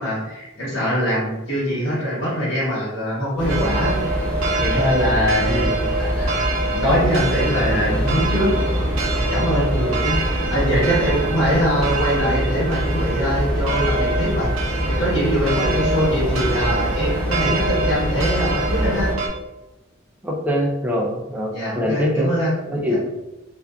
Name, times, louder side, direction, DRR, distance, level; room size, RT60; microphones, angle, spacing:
voice 1, 0.0-4.0 4.6-6.3 6.7-8.5 9.3-14.5 14.8-19.1 21.5-22.5 22.9-23.0, equal, 75° left, -7 dB, 1.1 m, -22 dB
sound 1, 3.4-19.1, equal, 25° left, 1.0 m, -24 dB
sound 2, 3.5-19.3, right 3 dB, 90° right, 0.5 m, -27 dB
voice 2, 20.2-22.3 22.7-23.0, equal, 10° right, -1 dB, 0.3 m, -23 dB
2.5 x 2.3 x 2.2 m, 1.0 s
head